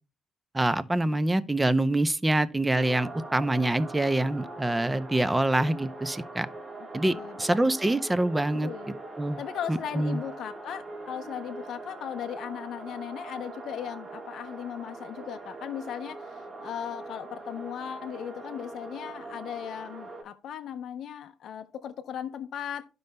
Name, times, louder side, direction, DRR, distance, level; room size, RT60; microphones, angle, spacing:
voice 1, 0.5-6.5 6.9-8.7 9.2-9.4 9.7-10.2, right 1 dB, 15° right, 0.6 m, -25 dB
sound 1, 2.7-20.2, right 2 dB, 35° right, 1.5 m, -42 dB
voice 2, 7.1-7.5 8.6-9.0 9.4-22.9, left 9 dB, 70° left, 0.5 m, -37 dB
12.5 x 5.3 x 2.2 m
cardioid pair, 90°, 0 cm